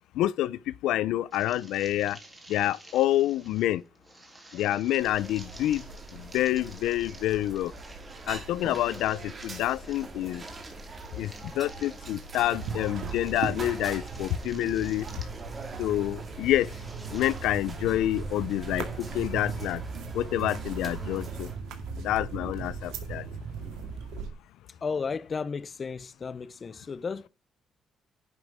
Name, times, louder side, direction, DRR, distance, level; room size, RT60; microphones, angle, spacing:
voice 1, 0.1-2.2 2.5-3.8 4.5-5.8 6.1-7.7 8.3-10.4 11.2-15.1 15.8-16.7 17.1-19.8 20.1-21.5 22.0-23.3, left 14 dB, 90° left, 0.4 m, -28 dB
sound 1, 1.3-17.5, right 2 dB, 15° right, 3.3 m, -52 dB
sound 2, 5.0-21.6, right 2 dB, 35° right, 2.6 m, -43 dB
sound 3, 12.5-24.3, right 5 dB, 90° right, 2.0 m, -38 dB
voice 2, 24.8-27.3, left 5 dB, 40° left, 0.6 m, -33 dB
10.5 x 5.9 x 3.4 m
cardioid pair, 90°, 0 cm